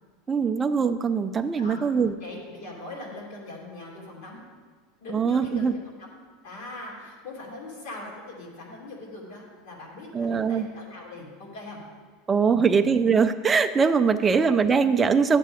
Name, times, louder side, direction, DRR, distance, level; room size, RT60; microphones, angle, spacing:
voice 1, 0.3-2.1 5.1-5.7 10.1-10.7 12.3-15.4, right 5 dB, 10° right, 8 dB, 0.3 m, -22 dB
voice 2, 2.2-4.4 5.0-5.7 6.0-6.1 6.4-11.8 12.5-12.9 14.1-14.3, left 2 dB, 65° left, -3 dB, 2.5 m, -41 dB
12.0 x 7.5 x 3.5 m, 1.5 s
supercardioid pair, 175°, 0 cm